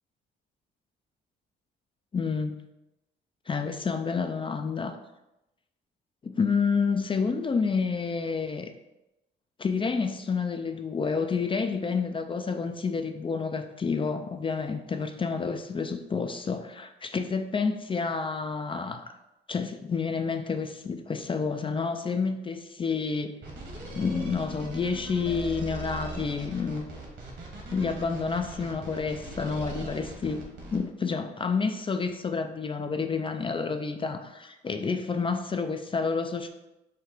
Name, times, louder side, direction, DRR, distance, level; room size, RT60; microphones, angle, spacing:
voice 1, 2.1-2.6 3.5-5.0 6.2-8.7 9.6-19.0 19.5-23.4 23.9-26.9 27.7-36.5, left 5 dB, 25° left, 7 dB, 0.4 m, -29 dB
sound 1, 23.4-30.8, right 3 dB, 65° right, 1.4 m, -39 dB
4.9 x 2.5 x 4.4 m, 0.93 s
cardioid pair, 90°, 20 cm